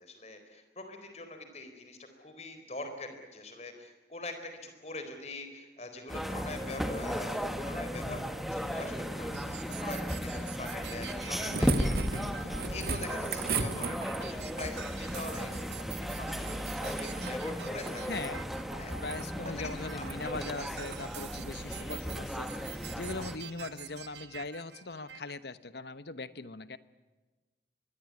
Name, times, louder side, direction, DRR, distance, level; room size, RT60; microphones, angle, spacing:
voice 1, 0.0-18.0 18.8-19.0 19.4-20.1 20.3-20.7 21.6-22.0, left 2 dB, 40° left, 7 dB, 4.3 m, -44 dB
sound 1, 6.1-23.4, equal, ahead, 1.6 m, -35 dB
sound 2, 9.3-25.3, right 7 dB, 85° right, 1.4 m, -47 dB
sound 3, 11.1-14.4 16.4-17.4 17.7-18.4 18.9-19.3 20.0-20.2 20.8-21.0 22.4-22.5, right 5 dB, 60° right, 2.0 m, -37 dB
voice 2, 18.1-18.4 19.0-26.8, left 3 dB, 70° left, 14 dB, 1.1 m, -40 dB
24.5 x 21.0 x 9.7 m, 1.2 s
head